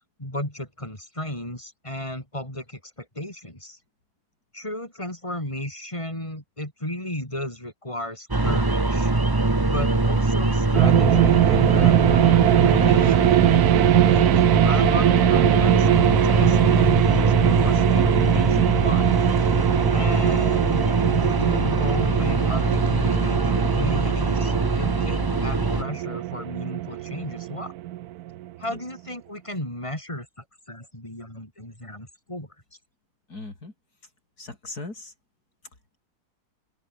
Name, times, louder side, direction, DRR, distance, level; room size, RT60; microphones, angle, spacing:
voice 1, 0.2-3.8 4.5-9.1 9.6-13.2 14.0-19.1 19.9-27.7 28.6-30.3 30.7-32.5, left 1 dB, 20° left, 7.5 m, -34 dB
sound 1, 8.3-25.8, right 2 dB, 15° right, 1.2 m, -22 dB
sound 2, 10.7-28.4, right 14 dB, 75° right, 1.1 m, -21 dB
voice 2, 23.6-23.9 28.7-28.8 33.3-33.7 34.4-35.1, left 2 dB, 75° left, 5.5 m, -39 dB
open air
omnidirectional pair, 1.7 m